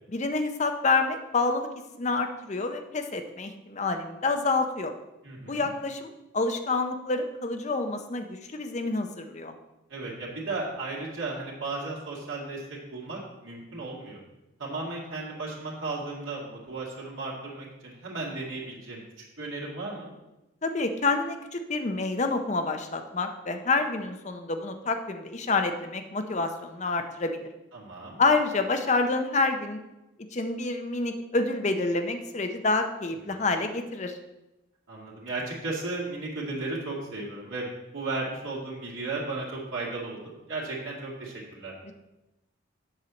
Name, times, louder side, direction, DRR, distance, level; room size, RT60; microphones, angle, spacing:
voice 1, 0.1-1.7 2.0-4.9 5.5-9.5 20.6-27.4 28.2-29.8 30.3-34.2 41.8-41.9, left 3 dB, 35° left, 7 dB, 0.6 m, -28 dB
voice 2, 5.2-5.7 9.9-14.2 14.6-19.0 19.4-20.1 27.7-28.2 33.3-33.4 34.9-37.7 37.9-40.2 40.5-41.7, right 3 dB, 80° right, -5 dB, 2.3 m, -35 dB
7.9 x 4.5 x 7.0 m, 0.99 s
head